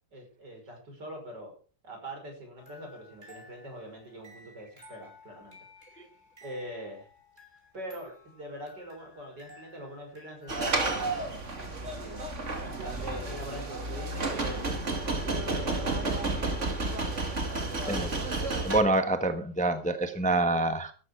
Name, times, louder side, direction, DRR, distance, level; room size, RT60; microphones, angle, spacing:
voice 1, 0.1-1.5 1.8-5.6 5.9-6.1 6.4-7.1 7.7-12.2 12.6-14.7 15.2-16.6 17.5-18.3, right 1 dB, 70° right, 2 dB, 6.2 m, -43 dB
sound 1, 2.6-10.9, left 2 dB, 25° right, 5.8 m, -55 dB
sound 2, 10.5-18.8, right 2 dB, 40° right, 2.7 m, -31 dB
voice 2, 18.6-20.9, right 2 dB, 5° left, 9 dB, 1.2 m, -26 dB
14.0 x 11.5 x 5.0 m, 0.36 s
omnidirectional pair, 1.9 m